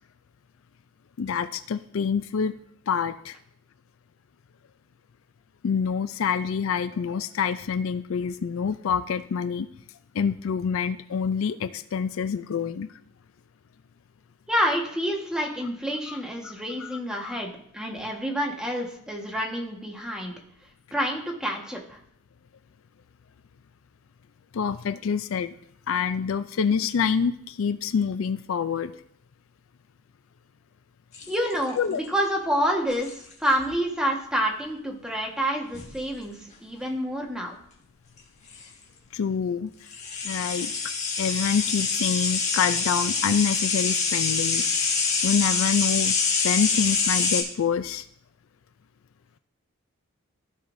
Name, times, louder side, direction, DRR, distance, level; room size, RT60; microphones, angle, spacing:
voice 1, 1.2-2.5 2.9-3.4 5.6-9.7 10.1-12.9 16.1-16.2 16.4-16.5 16.8-17.0 17.2-17.4 24.5-25.5 25.9-28.9 31.8-32.0 39.1-39.7 40.2-40.7 41.2-44.7 45.2-46.2 46.4-48.1, left 6 dB, 70° left, 12 dB, 0.4 m, -26 dB
voice 2, 14.5-20.3 20.9-22.0 31.3-36.3 36.6-37.5, equal, 5° right, -1 dB, 1.4 m, -28 dB
sound 1, 31.1-31.9 32.9-33.3 35.7-36.0 38.2-38.3 38.5-38.6 39.9-47.4, left 5 dB, 35° left, 1.6 m, -25 dB
15.0 x 5.6 x 2.7 m, 0.67 s
head